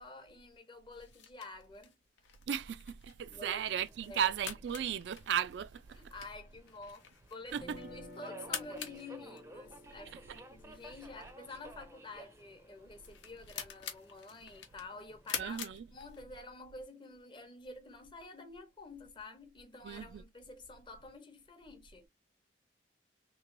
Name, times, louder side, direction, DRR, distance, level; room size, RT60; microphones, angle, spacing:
voice 1, 0.0-2.0 3.3-4.3 5.9-22.1, left 3 dB, 25° left, 0.7 m, -50 dB
sound 1, 0.9-16.6, left 8 dB, 85° left, 0.9 m, -47 dB
voice 2, 2.5-6.0 7.5-7.8 15.4-15.9 19.8-20.2, right 9 dB, 75° right, 0.3 m, -35 dB
Subway metro underground, 3.4-15.4, right 1 dB, 15° right, 0.5 m, -56 dB
sound 2, 7.5-13.5, left 1 dB, 60° left, 1.0 m, -55 dB
3.2 x 3.1 x 2.5 m
head